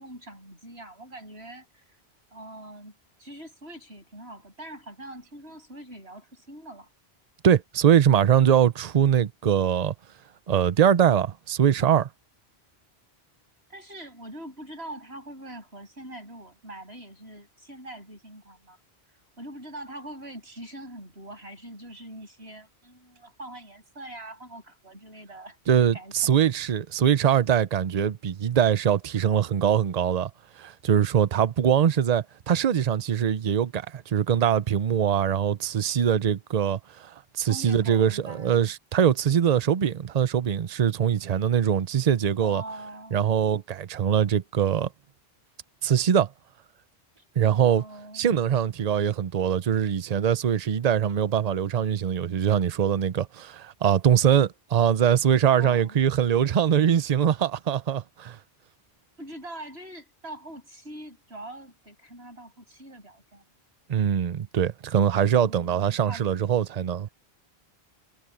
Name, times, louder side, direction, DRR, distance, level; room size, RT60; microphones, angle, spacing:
voice 1, 0.0-1.8 2.3-2.9 3.2-6.9 13.7-18.8 19.4-25.6 25.9-26.1 37.4-38.7 42.4-43.3 47.2-47.3 47.6-48.3 55.5-56.0 59.2-63.4 65.4-66.2, right 1 dB, 80° right, 8.4 m, -43 dB
voice 2, 7.4-9.9 10.5-12.1 25.7-30.3 30.6-42.6 43.1-44.9 45.8-46.3 47.4-47.8 48.1-58.4 63.9-67.1, right 9 dB, 45° right, 0.7 m, -22 dB
omnidirectional pair, 1.1 m